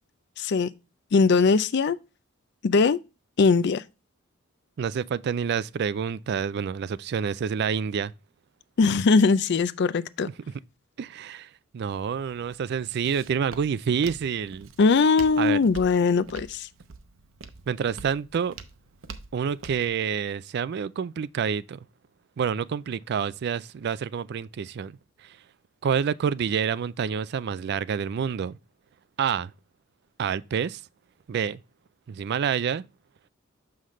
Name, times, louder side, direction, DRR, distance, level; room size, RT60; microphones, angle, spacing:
voice 1, 0.4-0.7 1.1-2.0 2.6-3.0 3.4-3.8 8.8-10.3 14.8-16.7, left 4 dB, 55° left, 0.4 m, -20 dB
voice 2, 4.8-8.1 11.0-11.5 11.7-14.7 15.4-15.6 17.7-18.5 19.3-21.8 22.4-25.4 25.8-28.6 29.2-29.5 30.2-30.8 31.3-31.6 32.1-32.8, right 7 dB, 50° right, 0.3 m, -28 dB
Walk footsteps, 11.8-19.9, right 4 dB, 70° right, 0.8 m, -46 dB
6.5 x 5.7 x 3.1 m
head